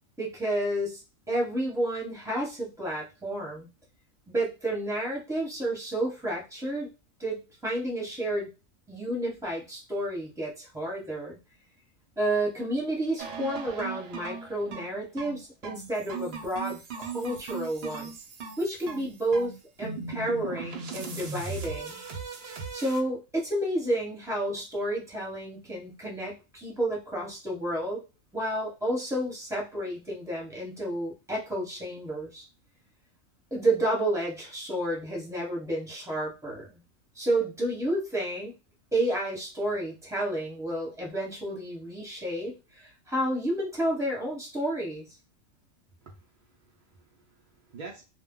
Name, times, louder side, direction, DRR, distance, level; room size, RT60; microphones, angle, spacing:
voice 1, 0.2-1.0 1.3-3.7 4.3-6.9 7.2-8.5 8.9-11.4 12.2-18.1 18.6-22.0 22.7-28.0 28.3-32.4 33.5-36.8 37.1-38.5 38.9-45.1, right 1 dB, 5° right, -3 dB, 0.8 m, -31 dB
sound 1, 13.2-23.0, right 5 dB, 60° right, 0.7 m, -38 dB
voice 2, 46.0-48.0, right 4 dB, 85° right, 0 dB, 0.4 m, -48 dB
2.2 x 2.1 x 3.6 m, 0.29 s
omnidirectional pair, 1.4 m